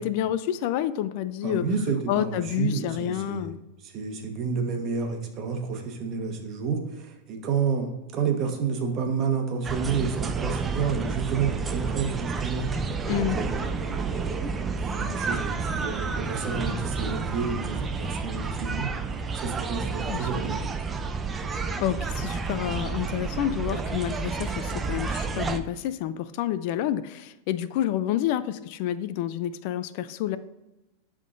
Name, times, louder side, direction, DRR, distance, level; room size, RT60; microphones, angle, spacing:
voice 1, 0.0-1.6 2.1-3.6 13.1-13.4 20.1-20.3 21.5-30.4, left 11 dB, 60° left, 14 dB, 0.3 m, -29 dB
voice 2, 1.4-3.5 3.8-12.9 13.3-14.2 14.8-18.9 19.3-20.6, right 5 dB, 40° right, 4 dB, 1.2 m, -30 dB
sound 1, 9.6-25.6, right 4 dB, 20° right, 0.4 m, -30 dB
11.0 x 3.7 x 2.6 m, 0.99 s
hypercardioid pair, 120°, 0 cm